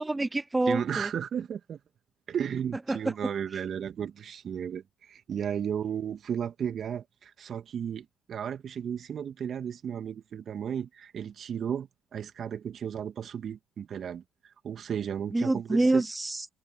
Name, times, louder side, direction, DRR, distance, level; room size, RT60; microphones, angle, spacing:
voice 1, 0.0-1.1 2.9-3.0 15.3-16.5, right 2 dB, 15° right, 0.6 m, -26 dB
voice 2, 0.7-1.8 2.3-16.0, right 8 dB, 55° right, 2.4 m, -34 dB
hypercardioid pair, 55°, 0 cm